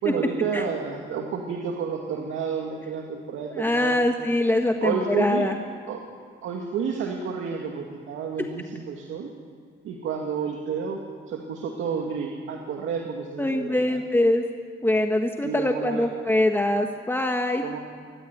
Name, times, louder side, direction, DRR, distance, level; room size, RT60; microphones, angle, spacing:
voice 1, 0.0-4.0 4.8-5.5 5.9-6.0 6.4-9.3 9.8-11.0 11.3-14.0 15.4-16.1 17.6-17.8, right 6 dB, 80° right, 1 dB, 2.2 m, -30 dB
voice 2, 3.5-5.5 8.4-8.5 13.4-14.4 14.8-17.6, left 1 dB, 10° left, 4 dB, 1.5 m, -23 dB
22.5 x 18.5 x 9.5 m, 2.2 s
cardioid pair, 90°, 20 cm